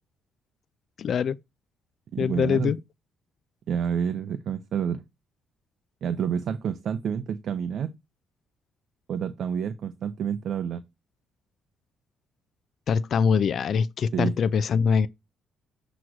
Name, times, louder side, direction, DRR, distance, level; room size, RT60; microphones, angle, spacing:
voice 1, 1.0-1.4 2.2-2.8 12.9-15.1, left 6 dB, 55° left, 0.4 m, -23 dB
voice 2, 2.1-2.7 3.7-5.0 6.0-7.9 9.1-10.8 14.1-14.3, right 8 dB, 60° right, 0.6 m, -28 dB
7.7 x 3.0 x 6.0 m
cardioid pair, 105°, 0 cm